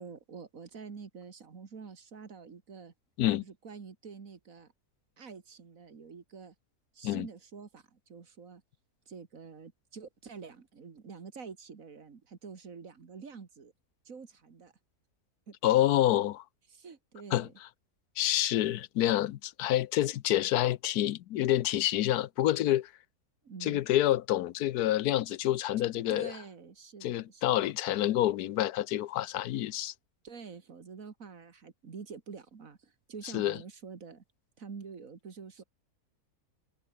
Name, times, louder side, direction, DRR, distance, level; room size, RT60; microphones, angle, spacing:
voice 1, 0.0-2.9 3.4-4.7 5.2-6.5 6.9-8.6 9.1-13.7 14.1-14.7 15.5-15.6 16.7-17.5 23.4-23.8 26.1-27.6 30.2-34.2 34.6-35.6, right 5 dB, 60° right, 2.3 m, -47 dB
voice 2, 15.6-16.4 17.3-17.5 18.2-22.9 23.6-26.3 27.0-29.9 33.3-33.6, left 13 dB, 90° left, 1.2 m, -28 dB
omnidirectional pair, 1.6 m